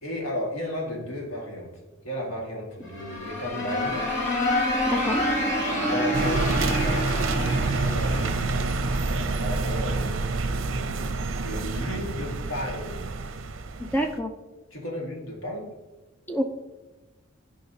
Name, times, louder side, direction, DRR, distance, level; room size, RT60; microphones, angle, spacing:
voice 1, 0.0-1.7 2.0-4.1 5.9-8.8 9.0-10.7 11.4-13.1 14.7-15.7, left 1 dB, 85° left, -1 dB, 1.9 m, -34 dB
sound 1, 2.8-9.6, left 1 dB, 65° left, 2.5 m, -28 dB
voice 2, 4.9-5.2 13.9-14.3 16.3-16.4, equal, 10° left, 4 dB, 0.4 m, -26 dB
sound 2, 6.1-14.2, right 3 dB, 75° right, 0.6 m, -27 dB
13.0 x 4.9 x 2.8 m, 1.1 s
head